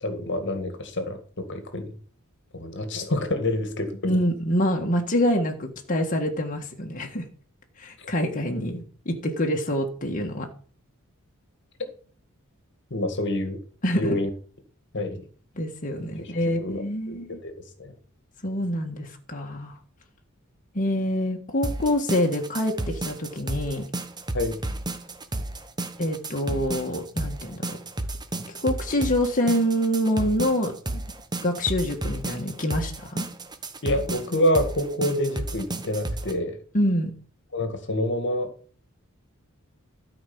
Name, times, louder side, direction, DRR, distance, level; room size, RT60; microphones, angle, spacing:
voice 1, 0.0-2.0 2.5-4.1 8.0-8.1 12.9-13.6 13.9-14.3 14.9-15.3 16.2-17.5 17.8-17.9 24.3-24.6 33.8-36.6 37.5-38.5, left 1 dB, 55° left, 8 dB, 1.9 m, -27 dB
voice 2, 4.1-7.2 7.8-10.5 13.8-14.2 15.6-17.4 18.4-19.8 20.7-23.8 26.0-27.6 28.6-31.0 31.4-33.3 36.7-37.1, equal, 40° left, 1 dB, 1.7 m, -26 dB
sound 1, 21.6-36.3, right 2 dB, 20° right, 1.1 m, -32 dB
13.0 x 5.3 x 7.1 m, 0.43 s
head